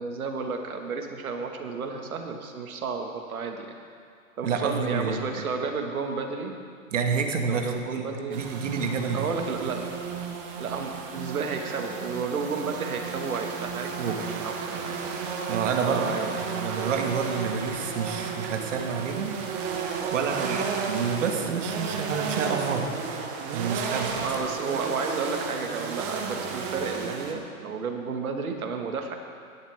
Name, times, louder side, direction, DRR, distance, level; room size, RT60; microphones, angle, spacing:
voice 1, 0.0-3.8 4.4-6.6 7.4-8.4 9.1-9.9 10.6-15.0 15.8-16.5 18.2-18.3 20.4-20.6 24.2-29.2, right 5 dB, 75° right, 4 dB, 1.9 m, -32 dB
voice 2, 4.4-5.4 6.9-9.3 14.0-14.2 15.5-16.1 16.4-19.4 20.1-22.9 23.5-24.3, right 5 dB, 60° right, 3 dB, 1.7 m, -29 dB
sound 1, 8.3-27.3, right 6 dB, 20° right, 0.8 m, -33 dB
18.0 x 11.5 x 3.6 m, 2.2 s
hypercardioid pair, 150°, 43 cm